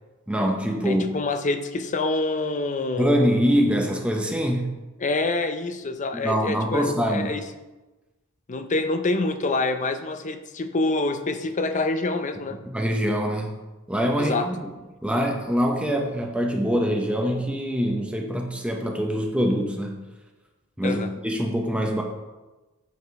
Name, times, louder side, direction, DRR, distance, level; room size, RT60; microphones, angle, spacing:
voice 1, 0.3-1.1 3.0-4.8 6.1-7.3 12.7-13.5 13.9-14.6 15.0-20.0 20.8-22.0, equal, 5° right, 1 dB, 0.7 m, -24 dB
voice 2, 0.8-3.2 5.0-7.5 8.5-12.6 14.2-14.5 20.8-21.1, left 2 dB, 35° left, 8 dB, 0.5 m, -26 dB
8.1 x 4.9 x 4.7 m, 1.1 s
head